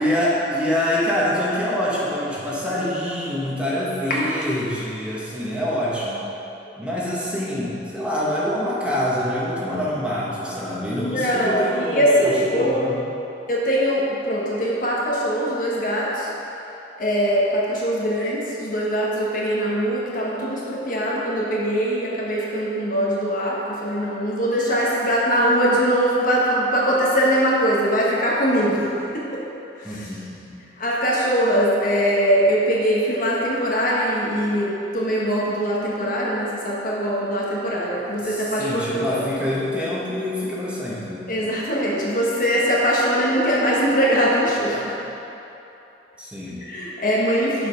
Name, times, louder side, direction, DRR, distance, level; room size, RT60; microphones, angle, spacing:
voice 1, 0.0-6.2 6.8-13.0 29.8-30.4 38.2-41.3 46.2-46.6, left 1 dB, 5° right, -7 dB, 1.1 m, -25 dB
voice 2, 11.0-12.9 13.5-16.3 17.0-29.4 29.8-30.1 30.8-39.2 41.3-45.0 46.6-47.7, equal, 50° left, -5 dB, 1.2 m, -22 dB
6.7 x 5.5 x 5.2 m, 3.0 s
head